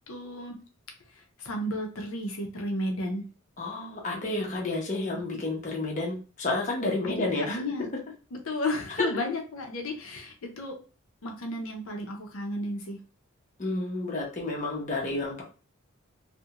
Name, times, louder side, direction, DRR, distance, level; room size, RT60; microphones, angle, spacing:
voice 1, 0.1-0.6 1.1-3.3 7.0-7.9 8.3-10.8 11.2-13.0, left 1 dB, 80° left, 2 dB, 0.6 m, -33 dB
voice 2, 3.6-7.6 9.0-9.1 13.6-15.4, left 2 dB, 35° left, -2 dB, 0.6 m, -30 dB
2.4 x 2.1 x 2.8 m, 0.35 s
head